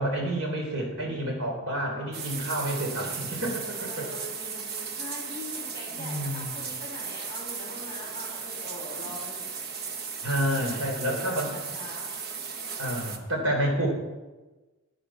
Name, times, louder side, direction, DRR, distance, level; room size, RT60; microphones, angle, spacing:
voice 1, 0.0-3.7 6.0-6.6 9.0-9.1 10.2-11.5 12.8-13.9, right 1 dB, 85° right, 1 dB, 3.4 m, -29 dB
voice 2, 1.8-2.2 3.8-9.5 10.5-12.3 13.1-13.2, left 1 dB, 15° left, -7 dB, 3.9 m, -43 dB
sound 1, 2.1-13.2, right 5 dB, 50° right, 1.1 m, -36 dB
10.5 x 9.2 x 5.8 m, 1.2 s
head